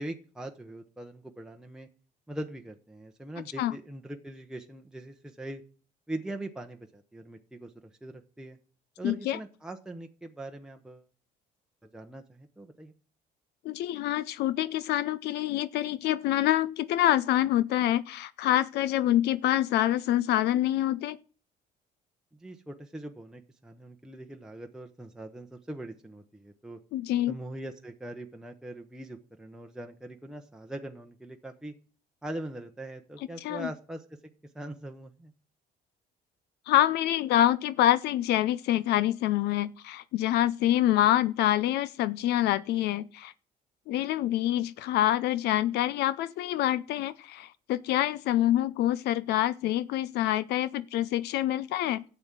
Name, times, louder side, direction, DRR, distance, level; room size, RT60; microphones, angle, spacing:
voice 1, 0.0-1.9 2.3-5.6 6.1-7.7 8.0-8.6 9.0-11.1 11.9-12.9 22.4-26.8 27.3-31.7 32.2-34.0 34.5-35.3, right 1 dB, 5° right, 0.9 m, -41 dB
voice 2, 9.0-9.4 13.6-21.2 26.9-27.4 33.4-33.7 36.7-43.3 43.9-52.0, left 13 dB, 75° left, 0.5 m, -26 dB
12.0 x 8.1 x 7.5 m
cardioid pair, 110°, 17 cm